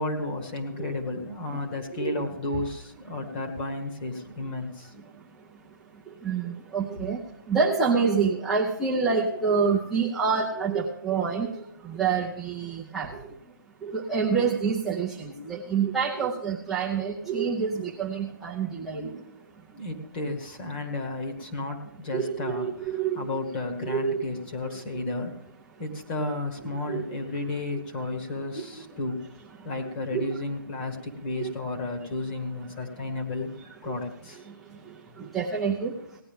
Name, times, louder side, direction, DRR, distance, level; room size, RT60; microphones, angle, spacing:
voice 1, 0.0-4.9 19.7-25.4 25.8-29.2 29.6-33.5 33.8-34.4, left 2 dB, 30° left, 3 dB, 1.6 m, -33 dB
voice 2, 6.2-7.2 7.5-11.5 11.8-13.1 13.8-19.2 22.1-23.3 23.8-24.2 26.6-27.0 30.1-30.4 31.4-31.5 35.2-35.9, right 5 dB, ahead, -7 dB, 0.6 m, -27 dB
17.0 x 9.8 x 3.6 m, 0.72 s
hypercardioid pair, 160°, 11 cm